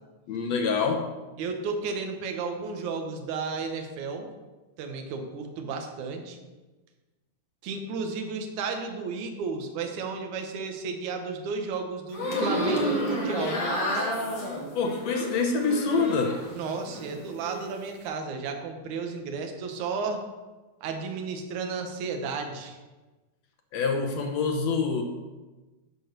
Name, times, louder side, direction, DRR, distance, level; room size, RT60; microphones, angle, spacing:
voice 1, 0.3-1.1 14.8-16.4 23.7-25.0, left 5 dB, 70° left, 4 dB, 1.7 m, -26 dB
voice 2, 1.4-4.3 4.8-6.4 7.6-13.6 16.5-20.2 20.8-22.8, right 4 dB, 70° right, 4 dB, 2.4 m, -33 dB
sound 1, 12.1-16.5 16.9-17.6, equal, 40° left, 2.3 m, -30 dB
12.0 x 4.6 x 6.6 m, 1.2 s
omnidirectional pair, 3.7 m